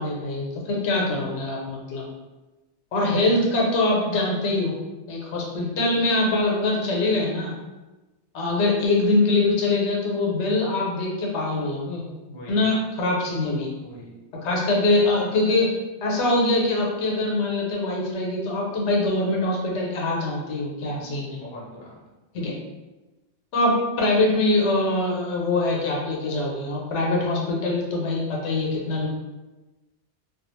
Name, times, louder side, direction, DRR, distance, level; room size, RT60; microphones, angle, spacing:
voice 1, 0.0-2.1 2.9-4.7 5.1-7.5 8.3-12.0 12.5-13.7 14.3-15.7 16.0-21.4 22.3-22.5 23.5-29.1, left 2 dB, 80° left, -2 dB, 0.9 m, -23 dB
voice 2, 12.3-12.7 13.8-14.2 20.9-22.0, equal, 50° left, -4 dB, 0.7 m, -42 dB
2.3 x 2.2 x 2.9 m, 1.1 s
omnidirectional pair, 1.2 m